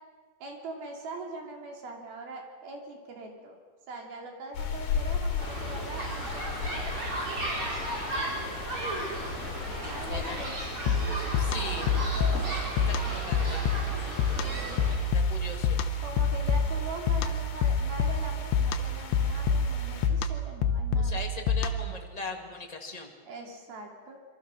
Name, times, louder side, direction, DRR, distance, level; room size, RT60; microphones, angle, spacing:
voice 1, 0.4-3.6 3.9-6.4 9.9-10.5 11.7-12.0 14.2-15.1 16.0-21.2 23.2-24.2, right 2 dB, 65° right, 2 dB, 4.8 m, -42 dB
sound 1, 4.5-20.1, left 6 dB, 65° left, 4.2 m, -38 dB
sound 2, 5.4-15.0, right 1 dB, 30° right, 5.7 m, -35 dB
voice 2, 10.1-10.4 11.4-11.9 12.9-13.6 15.1-15.8 21.0-23.1, left 3 dB, 25° left, 2 dB, 0.9 m, -39 dB
sound 3, 10.9-22.0, left 4 dB, 85° left, 3.3 m, -28 dB
27.0 x 23.5 x 6.4 m, 1.5 s
omnidirectional pair, 4.8 m